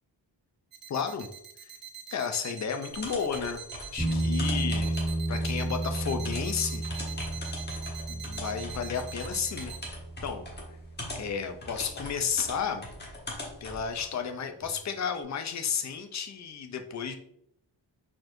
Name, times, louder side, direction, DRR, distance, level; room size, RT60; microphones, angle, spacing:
sound 1, 0.7-9.9, right 9 dB, 50° right, 0.5 m, -43 dB
voice 1, 0.9-1.3 1.6-1.7 2.1-3.6 3.9-5.0 5.3-6.8 8.1-9.7 10.2-10.5 11.1-12.9 13.6-17.2, left 6 dB, 40° left, 6 dB, 0.5 m, -32 dB
sound 2, 2.9-14.1, left 1 dB, 20° left, 1.1 m, -41 dB
sound 3, 4.0-11.6 14.6-14.7, right 1 dB, 10° right, 1.7 m, -33 dB
4.4 x 4.3 x 2.5 m, 0.70 s
wide cardioid pair, 145°, 46 cm